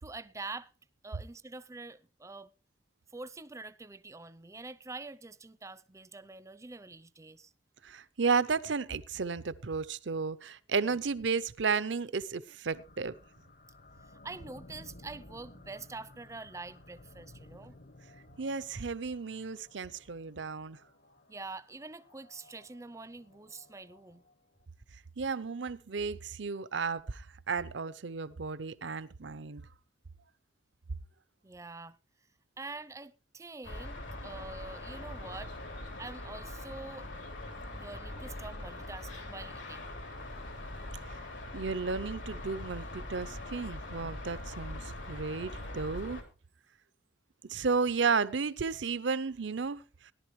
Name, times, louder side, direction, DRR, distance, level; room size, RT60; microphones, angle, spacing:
voice 1, 0.0-0.7 1.0-2.5 3.1-7.5 10.8-11.0 14.0-17.7 21.3-24.2 31.4-32.0 32.6-35.5 36.0-37.1 37.7-39.9, right 3 dB, 15° right, 0.5 m, -45 dB
voice 2, 7.8-13.1 18.4-20.8 25.2-29.6 41.1-41.2 41.5-46.2 47.4-50.1, right 5 dB, 75° right, 0.7 m, -33 dB
sound 1, 12.7-24.6, left 1 dB, 60° left, 1.3 m, -56 dB
sound 2, 33.6-46.2, left 1 dB, 85° left, 3.3 m, -42 dB
17.5 x 11.5 x 3.1 m
head